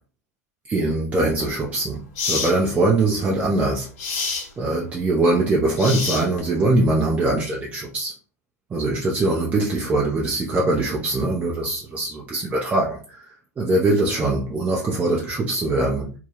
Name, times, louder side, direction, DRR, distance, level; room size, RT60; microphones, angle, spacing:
voice 1, 0.7-2.0 2.3-3.9 4.6-8.1 8.7-13.0 13.6-16.1, right 2 dB, 15° right, 0.5 m, -22 dB
sound 1, 1.3-1.4 2.2-2.6 4.0-4.5 5.8-6.5, left 4 dB, 50° left, 0.8 m, -27 dB
2.2 x 2.1 x 3.2 m
figure-of-eight pair, 100°, 9 cm